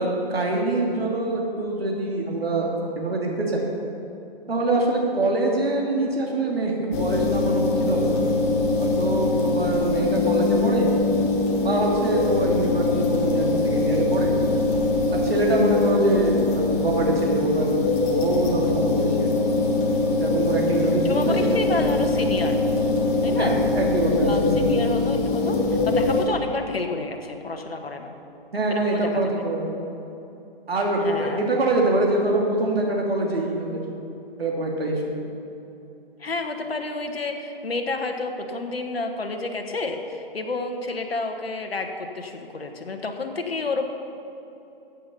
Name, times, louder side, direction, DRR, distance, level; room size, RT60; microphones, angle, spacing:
voice 1, 0.0-2.7 3.0-3.7 4.5-8.2 8.8-10.9 11.6-14.3 15.1-19.3 20.2-21.8 23.4-24.7 28.5-29.7 30.7-33.8 34.4-35.2, right 2 dB, 80° right, -1 dB, 2.7 m, -24 dB
sound 1, 6.9-26.2, left 3 dB, 20° left, 1.5 m, -22 dB
voice 2, 20.8-22.6 23.2-23.6 24.2-28.1 28.7-29.1 31.0-31.4 36.2-43.9, left 3 dB, 80° left, 4 dB, 1.4 m, -30 dB
14.0 x 8.4 x 5.6 m, 2.8 s
figure-of-eight pair, 130°, 30 cm